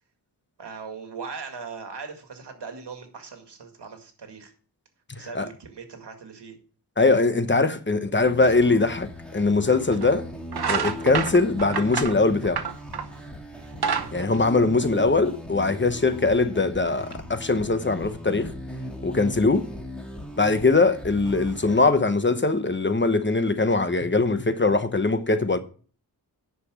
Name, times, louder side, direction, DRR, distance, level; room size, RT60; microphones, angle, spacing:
voice 1, 0.6-4.5 5.1-6.6 14.1-14.5, right 5 dB, 85° right, 2.1 m, -39 dB
voice 2, 5.2-5.5 7.0-10.2 10.7-12.6 14.1-18.5 19.0-19.7 20.4-25.6, left 3 dB, 30° left, 1.0 m, -21 dB
sound 1, 8.2-21.9, equal, ahead, 2.3 m, -38 dB
sound 2, 9.2-9.3 9.9-10.1 10.5-13.2 13.6-15.2, right 6 dB, 70° right, 1.2 m, -28 dB
10.0 x 6.1 x 6.1 m
wide cardioid pair, 95°, 40 cm